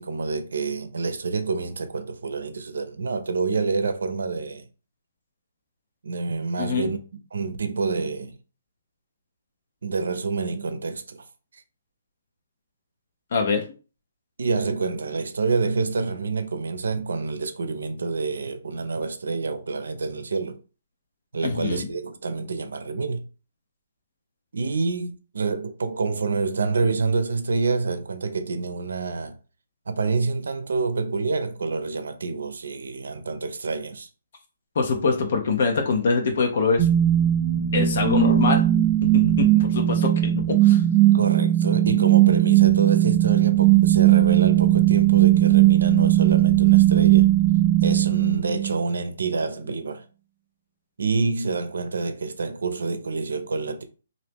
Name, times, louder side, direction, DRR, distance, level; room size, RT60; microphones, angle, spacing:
voice 1, 0.0-4.7 6.0-7.0 7.3-8.3 9.8-11.3 14.4-20.6 21.3-23.3 24.5-29.4 29.9-34.1 41.1-47.3 47.8-50.0 51.0-53.8, right 4 dB, 75° right, 0.6 m, -27 dB
voice 2, 6.6-6.9 13.3-13.7 21.4-21.8 34.8-36.9 37.7-40.8, left 4 dB, 55° left, 0.7 m, -24 dB
sound 1, 36.8-48.8, right 14 dB, 25° right, 0.4 m, -18 dB
2.9 x 2.6 x 3.4 m
hypercardioid pair, 150°, 0 cm